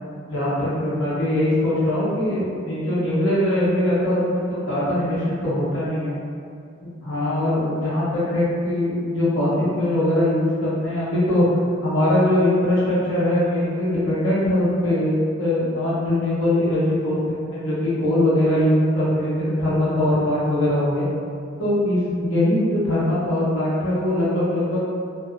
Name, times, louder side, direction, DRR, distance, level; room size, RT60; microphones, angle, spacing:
voice 1, 0.3-6.2 7.0-11.4 11.8-21.0 21.6-24.8, left 1 dB, 65° left, -10 dB, 0.8 m, -21 dB
2.6 x 2.0 x 2.4 m, 2.4 s
head